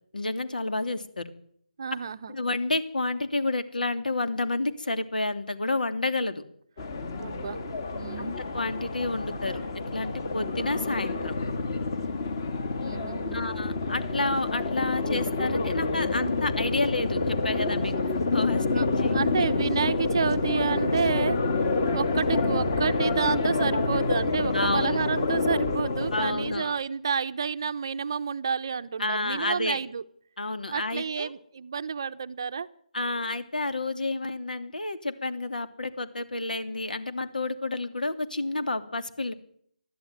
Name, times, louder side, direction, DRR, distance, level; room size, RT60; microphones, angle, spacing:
voice 1, 0.1-1.3 2.3-6.4 8.2-11.4 13.3-18.6 19.0-19.1 24.5-25.0 26.1-26.7 29.0-29.8 30.4-31.3 32.9-39.3, left 2 dB, 80° left, 10 dB, 2.8 m, -30 dB
voice 2, 1.8-2.4 7.2-7.6 7.9-8.4 12.8-13.4 18.7-21.4 21.9-30.0 30.7-32.7, right 6 dB, 30° right, 10 dB, 0.7 m, -30 dB
sound 1, 6.8-26.6, left 3 dB, 25° left, 1.9 m, -28 dB
21.5 x 13.0 x 9.3 m, 0.66 s
figure-of-eight pair, 170°, 5 cm